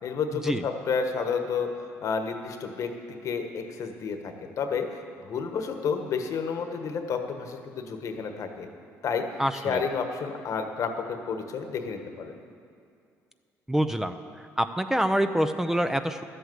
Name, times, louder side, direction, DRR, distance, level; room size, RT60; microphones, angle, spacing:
voice 1, 0.0-2.9 3.2-8.7 9.0-9.3 9.5-12.4, left 5 dB, 60° left, 6 dB, 1.4 m, -31 dB
voice 2, 9.4-9.8 13.7-14.1 14.6-16.2, equal, 5° right, 8 dB, 0.6 m, -26 dB
12.5 x 8.0 x 7.9 m, 2.3 s
supercardioid pair, 80°, 6 cm